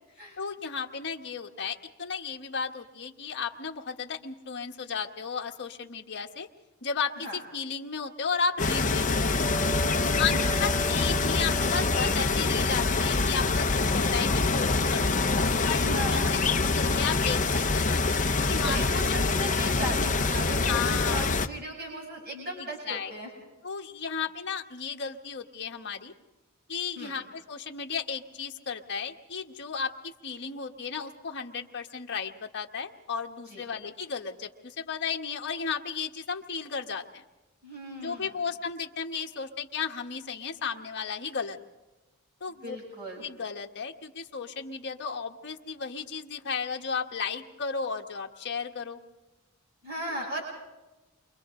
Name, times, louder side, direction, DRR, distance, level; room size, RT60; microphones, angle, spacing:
voice 1, 0.4-6.5 6.8-9.6 10.2-10.3 10.6-15.2 15.6-18.8 20.7-21.3 22.6-23.1 23.6-26.1 26.7-37.2 38.0-41.6 42.4-42.8 43.2-49.0 50.1-50.2, left 6 dB, 55° left, 2 dB, 1.5 m, -34 dB
sound 1, 8.6-21.5, left 3 dB, 35° left, 0.8 m, -25 dB
voice 2, 9.8-10.5 15.8-16.4 18.6-23.3 27.0-27.1 33.5-33.6 37.6-38.3 42.6-43.2 49.8-50.4, right 1 dB, 45° right, -2 dB, 7.8 m, -37 dB
29.5 x 24.5 x 3.9 m, 1.1 s
head